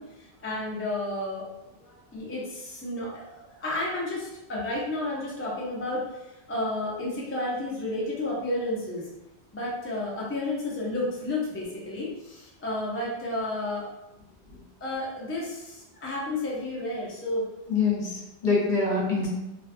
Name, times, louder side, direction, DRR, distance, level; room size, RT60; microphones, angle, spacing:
voice 1, 0.0-1.4 2.1-6.2 6.5-9.1 9.5-13.9 14.8-17.5, left 1 dB, 20° left, -5 dB, 0.3 m, -31 dB
voice 2, 17.7-19.3, left 4 dB, 55° left, -4 dB, 0.8 m, -25 dB
2.4 x 2.3 x 2.5 m, 0.93 s
omnidirectional pair, 1.1 m